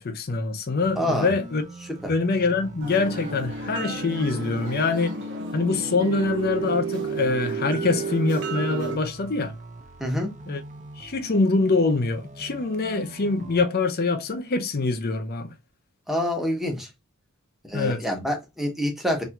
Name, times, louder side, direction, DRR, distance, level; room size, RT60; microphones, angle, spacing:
voice 1, 0.0-1.6 2.1-5.2 5.5-9.5 10.5-10.6 11.0-15.5 17.7-18.0, left 3 dB, 45° left, 0.6 m, -24 dB
sound 1, 0.8-13.6, right 2 dB, 35° right, 0.6 m, -43 dB
voice 2, 1.0-1.3 2.0-2.1 10.0-10.3 16.1-16.9 17.6-19.2, equal, ahead, 0.9 m, -26 dB
sound 2, 2.8-9.0, right 4 dB, 60° right, 1.0 m, -31 dB
4.3 x 2.7 x 2.3 m
head